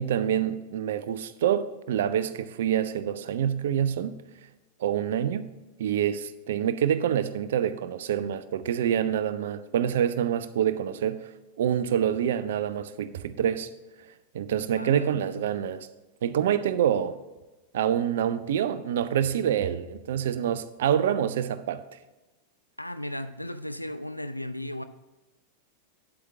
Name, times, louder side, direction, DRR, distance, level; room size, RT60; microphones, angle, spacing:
voice 1, 0.0-4.2 4.8-5.5 5.8-11.3 11.6-13.7 14.3-15.9 16.2-17.2 17.7-21.8, right 9 dB, 60° right, 0.5 m, -26 dB
voice 2, 14.8-15.5 22.8-24.8, left 1 dB, 90° left, 0.5 m, -36 dB
8.9 x 8.1 x 3.5 m
figure-of-eight pair, 90°, 0 cm